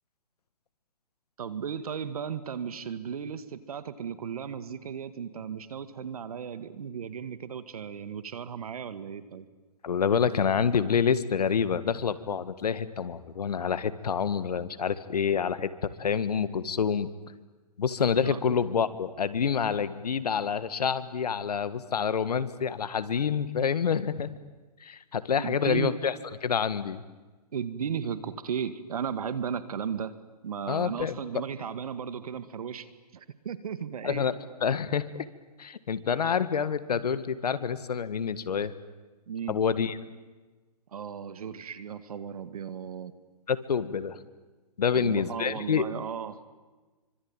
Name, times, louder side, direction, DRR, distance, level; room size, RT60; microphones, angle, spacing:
voice 1, 1.4-9.5 18.2-18.4 25.4-26.0 27.5-30.1 30.4-32.9 33.1-34.3 39.3-39.6 40.9-43.1 44.9-46.4, right 7 dB, 60° right, 13 dB, 2.1 m, -35 dB
voice 2, 9.8-15.7 16.0-17.1 17.8-24.3 24.8-26.1 26.4-27.0 30.7-31.2 34.0-35.1 35.6-38.7 39.5-40.0 43.5-44.2 44.8-45.9, left 7 dB, 70° left, 13 dB, 1.8 m, -27 dB
26.0 x 25.5 x 9.1 m, 1.3 s
hypercardioid pair, 160°, 21 cm